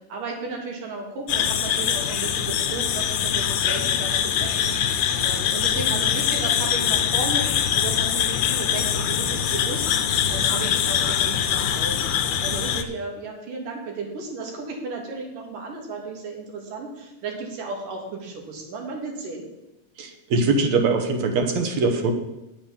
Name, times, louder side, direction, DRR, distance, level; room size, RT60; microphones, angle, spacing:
voice 1, 0.0-4.8 5.2-9.9 10.3-12.1 12.4-19.5, right 3 dB, 80° right, 1 dB, 4.0 m, -34 dB
sound 1, 1.3-12.8, left 9 dB, 70° left, 2.0 m, -23 dB
voice 2, 20.0-22.1, right 3 dB, 65° right, 4 dB, 2.3 m, -22 dB
10.0 x 7.9 x 7.1 m, 0.95 s
omnidirectional pair, 3.7 m